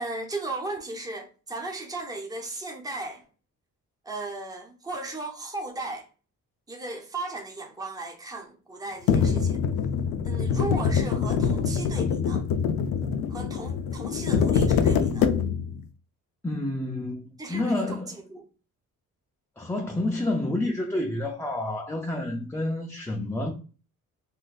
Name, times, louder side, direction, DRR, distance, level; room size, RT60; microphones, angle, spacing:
voice 1, 0.0-3.2 4.0-6.1 6.7-9.6 10.2-12.4 13.3-15.3 17.4-18.4, right 2 dB, 10° right, 0.7 m, -36 dB
sound 1, 9.1-15.8, left 6 dB, 90° left, 0.5 m, -24 dB
voice 2, 16.4-18.2 19.6-23.5, left 1 dB, 10° left, 0.4 m, -29 dB
3.9 x 2.5 x 2.3 m
cardioid pair, 135°, 33 cm